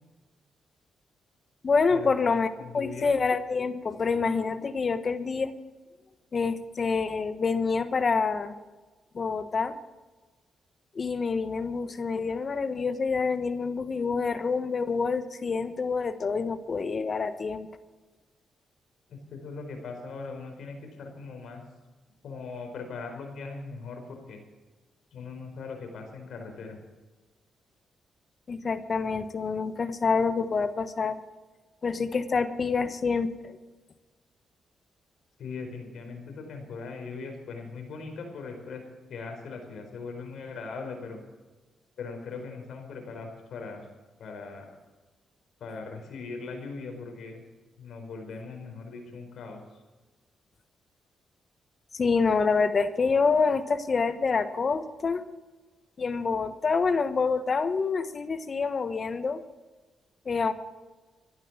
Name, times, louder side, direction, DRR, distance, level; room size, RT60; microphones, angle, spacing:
voice 1, 1.6-5.5 6.3-8.5 9.1-9.8 10.9-17.7 28.5-31.2 31.8-33.6 51.9-55.2 56.0-59.4 60.2-60.5, left 4 dB, 45° left, 11 dB, 1.2 m, -27 dB
voice 2, 2.6-3.1 19.1-21.6 22.2-24.4 25.1-26.8 35.4-38.8 39.1-41.2 42.0-43.8 44.2-44.8 45.6-47.4 47.8-49.6, left 4 dB, 70° left, 4 dB, 4.6 m, -40 dB
14.5 x 11.5 x 7.4 m, 1.2 s
cardioid pair, 65°, 0 cm